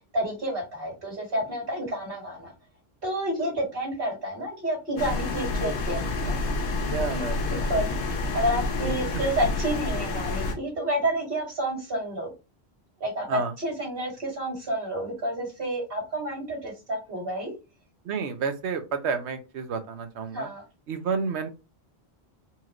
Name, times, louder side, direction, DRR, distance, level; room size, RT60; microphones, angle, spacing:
voice 1, 0.1-2.5 3.0-6.4 7.1-12.3 13.0-17.5 20.3-20.6, right 1 dB, 55° right, -2 dB, 2.1 m, -30 dB
sound 1, 5.0-10.5, left 3 dB, 85° left, 1.1 m, -28 dB
voice 2, 6.9-7.7 8.8-8.9 13.3-13.5 18.0-20.5 20.9-21.5, right 5 dB, 85° right, 8 dB, 1.0 m, -30 dB
4.3 x 2.5 x 2.9 m, 0.28 s
omnidirectional pair, 1.1 m